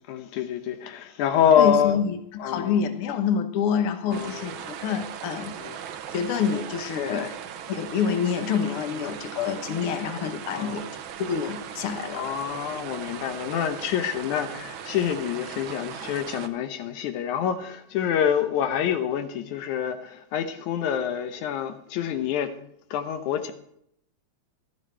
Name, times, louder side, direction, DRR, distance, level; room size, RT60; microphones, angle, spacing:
voice 1, 0.1-2.0 2.4-2.8 4.1-4.4 5.6-5.7 7.1-7.3 10.5-10.8 12.1-22.5 22.9-23.5, left 9 dB, 85° left, 2.3 m, -26 dB
voice 2, 1.6-5.6 6.1-7.3 7.7-10.9 11.2-12.3, left 7 dB, 60° left, 1.7 m, -27 dB
sound 1, 4.1-16.5, right 9 dB, 90° right, 1.1 m, -38 dB
14.5 x 12.5 x 4.4 m
omnidirectional pair, 3.3 m